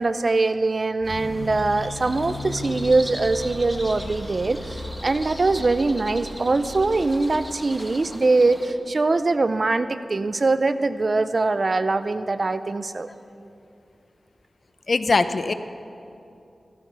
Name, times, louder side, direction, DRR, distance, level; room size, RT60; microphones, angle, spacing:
voice 1, 0.0-13.1, right 3 dB, 45° right, 12 dB, 0.6 m, -22 dB
sound 1, 1.0-8.7, equal, ahead, 1.2 m, -40 dB
sound 2, 1.0-8.2, left 1 dB, 75° right, 4.2 m, -37 dB
voice 2, 14.9-15.5, left 3 dB, 55° left, 11 dB, 0.7 m, -21 dB
15.5 x 14.0 x 6.1 m, 2.6 s
wide cardioid pair, 95°, 0 cm